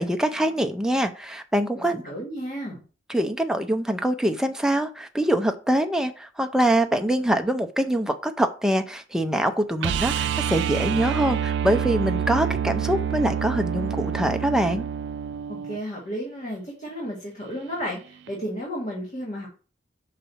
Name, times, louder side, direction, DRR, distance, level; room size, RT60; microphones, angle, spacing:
voice 1, 0.0-2.0 3.1-14.9, right 1 dB, 5° right, 6 dB, 0.5 m, -24 dB
voice 2, 1.7-2.8 15.5-19.5, equal, 40° left, -3 dB, 1.7 m, -33 dB
sound 1, 9.8-15.8 18.3-18.4, right 8 dB, 70° right, 0.3 m, -27 dB
5.5 x 4.1 x 5.6 m, 0.38 s
head